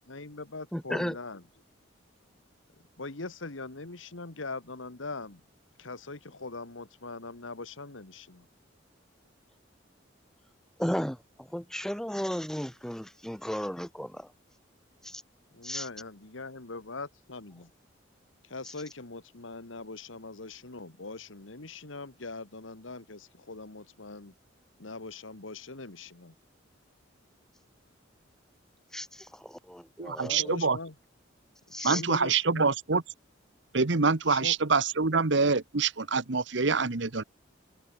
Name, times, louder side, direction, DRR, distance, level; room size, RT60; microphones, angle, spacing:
voice 1, 0.1-1.4 3.0-5.4 5.8-8.5 15.5-17.7 18.4-24.3 24.8-26.3 30.2-30.9 31.8-32.7 34.3-34.5, left 3 dB, 85° left, 1.8 m, -41 dB
voice 2, 0.7-1.1 10.8-14.3 15.0-15.2 15.6-15.9 28.9-30.4 31.7-32.0, equal, 5° left, 0.8 m, -34 dB
voice 3, 30.0-30.8 31.8-33.0 33.7-37.2, right 4 dB, 65° right, 1.1 m, -26 dB
open air
head